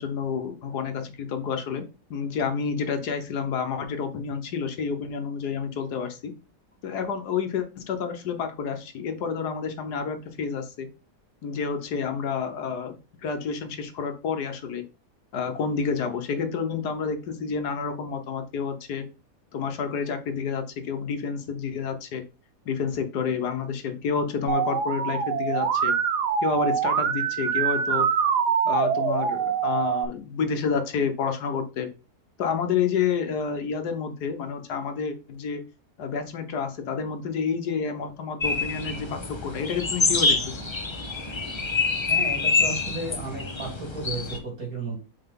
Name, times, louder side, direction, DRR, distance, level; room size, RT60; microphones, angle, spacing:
voice 1, 0.0-6.3 6.8-10.9 11.4-12.9 13.2-14.8 15.3-19.1 19.5-22.2 22.6-25.9 26.4-28.1 28.6-31.9 32.4-35.6 36.0-40.6, left 6 dB, 80° left, 7 dB, 1.6 m, -29 dB
Musical instrument, 24.5-30.0, right 7 dB, 85° right, 1.4 m, -24 dB
sound 1, 38.4-44.4, left 3 dB, 30° left, 0.6 m, -26 dB
voice 2, 42.1-45.0, right 2 dB, 60° right, 0 dB, 3.2 m, -33 dB
5.7 x 4.5 x 3.7 m, 0.31 s
omnidirectional pair, 1.7 m